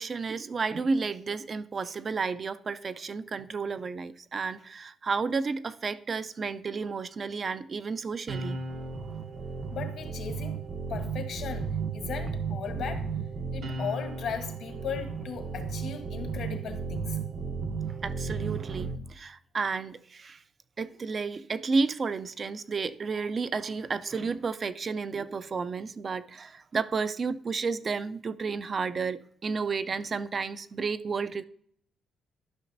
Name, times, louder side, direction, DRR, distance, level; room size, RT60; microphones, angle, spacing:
voice 1, 0.0-8.6 18.0-20.4 20.8-31.4, right 4 dB, 40° right, 0.4 m, -32 dB
sound 1, 8.3-19.0, right 5 dB, 65° right, 0.9 m, -34 dB
voice 2, 9.7-10.6 10.9-13.1 13.5-17.2, left 7 dB, 70° left, 1.2 m, -37 dB
12.0 x 5.8 x 2.6 m
cardioid pair, 90°, 0 cm